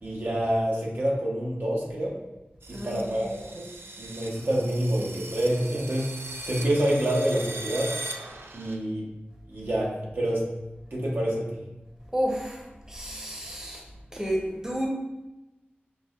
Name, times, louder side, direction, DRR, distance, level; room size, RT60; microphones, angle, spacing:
voice 1, 0.0-2.2 2.7-3.7 4.0-6.1 6.4-7.9 8.5-9.1 9.5-10.4 10.9-11.5, right 1 dB, 65° right, -3 dB, 0.8 m, -27 dB
sound 1, 2.6-8.8, right 2 dB, 90° right, 0.3 m, -40 dB
voice 2, 2.7-3.3 12.1-13.9 14.1-14.9, equal, 15° right, -2 dB, 0.8 m, -31 dB
5.9 x 2.1 x 2.3 m, 1.0 s
wide cardioid pair, 45°, 4 cm